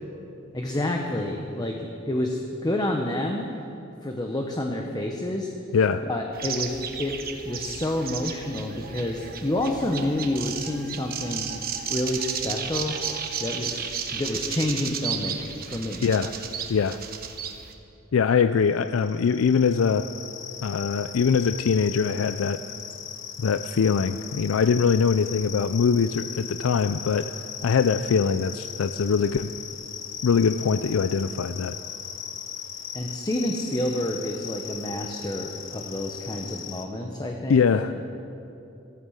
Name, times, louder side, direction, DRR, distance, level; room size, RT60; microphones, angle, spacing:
voice 1, 0.5-3.4 4.0-5.5 5.9-7.2 7.4-13.0 13.4-13.8 14.1-16.1 32.9-37.9, left 1 dB, 20° left, 2 dB, 1.0 m, -29 dB
sound 1, 6.3-17.7, right 7 dB, 50° right, 1.2 m, -33 dB
voice 2, 18.1-20.1 20.6-22.6 23.4-27.3 27.6-29.5 30.2-31.8 37.5-37.9, left 6 dB, 85° left, 11 dB, 0.4 m, -22 dB
sound 2, 18.7-36.8, left 9 dB, 65° left, 1.0 m, -38 dB
15.0 x 14.0 x 6.4 m, 2.7 s
head